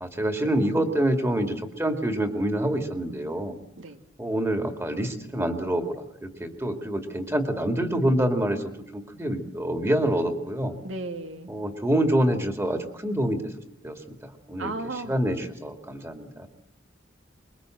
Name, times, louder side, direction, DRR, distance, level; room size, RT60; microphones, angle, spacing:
voice 1, 0.0-3.5 4.2-5.9 6.2-10.7 11.5-13.4 13.8-14.0 14.5-14.7 15.1-16.5, right 1 dB, 15° right, 6 dB, 2.2 m, -26 dB
voice 2, 10.8-11.5 14.6-15.2, right 2 dB, 80° right, 7 dB, 2.4 m, -35 dB
25.0 x 22.5 x 7.8 m, 0.80 s
head